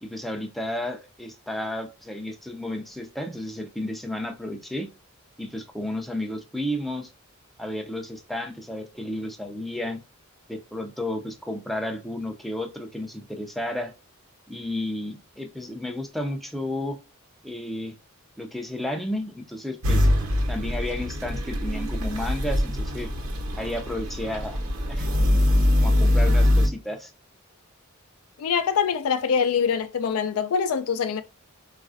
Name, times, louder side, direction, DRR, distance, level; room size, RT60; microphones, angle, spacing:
voice 1, 0.0-4.9 5.4-7.1 7.6-10.0 10.5-13.9 14.5-17.0 17.4-17.9 18.4-20.1 20.5-23.1 23.6-24.6 24.9-25.1 25.8-27.1, left 1 dB, ahead, 0.4 m, -32 dB
sound 1, 19.8-26.7, left 1 dB, 75° right, 1.0 m, -23 dB
voice 2, 28.4-31.2, left 6 dB, 85° left, 0.4 m, -24 dB
4.0 x 2.4 x 2.5 m
head